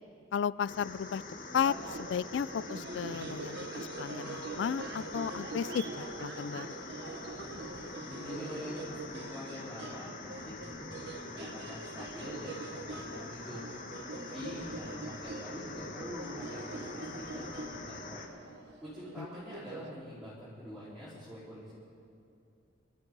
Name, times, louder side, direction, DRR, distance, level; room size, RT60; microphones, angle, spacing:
voice 1, 0.3-1.2 1.5-6.8 19.2-19.3, left 7 dB, 65° left, 19 dB, 0.3 m, -34 dB
sound 1, 0.7-18.3, left 3 dB, 45° left, 1.2 m, -45 dB
sound 2, 1.6-19.9, right 3 dB, 60° right, 1.0 m, -44 dB
voice 2, 8.0-13.7 14.1-18.3 18.8-21.7, equal, ahead, -12 dB, 4.2 m, -45 dB
28.0 x 13.0 x 3.9 m, 2.6 s
head